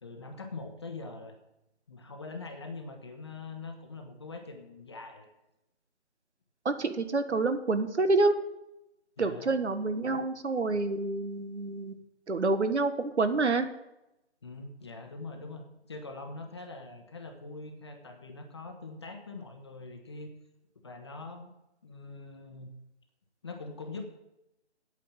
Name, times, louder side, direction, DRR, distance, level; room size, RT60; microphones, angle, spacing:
voice 1, 0.0-1.4 1.9-5.3 9.2-9.5 14.4-20.3 20.8-21.5 21.8-22.7 23.4-24.0, left 3 dB, 25° left, 4 dB, 1.0 m, -43 dB
voice 2, 6.6-8.3 9.2-12.0 12.3-13.7, right 3 dB, 80° right, 9 dB, 1.5 m, -27 dB
8.9 x 8.6 x 7.4 m, 0.89 s
figure-of-eight pair, 165°, 34 cm